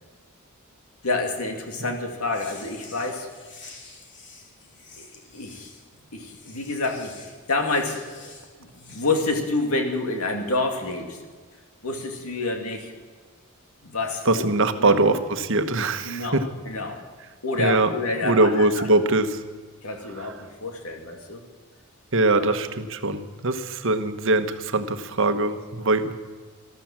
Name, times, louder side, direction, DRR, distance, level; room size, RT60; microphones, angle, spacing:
voice 1, 1.0-3.3 5.0-5.1 5.3-5.7 6.1-8.3 8.6-11.2 11.8-12.9 13.8-14.5 14.8-15.0 16.0-17.0 17.4-18.9 19.8-21.4 22.2-22.4, left 3 dB, 75° left, 3 dB, 2.5 m, -28 dB
sound 1, 2.3-9.2, left 4 dB, 55° left, 2.9 m, -48 dB
voice 2, 14.3-16.4 17.6-17.9 18.2-19.4 22.1-26.2, right 2 dB, 60° right, 9 dB, 1.1 m, -22 dB
14.0 x 13.5 x 7.3 m, 1.5 s
head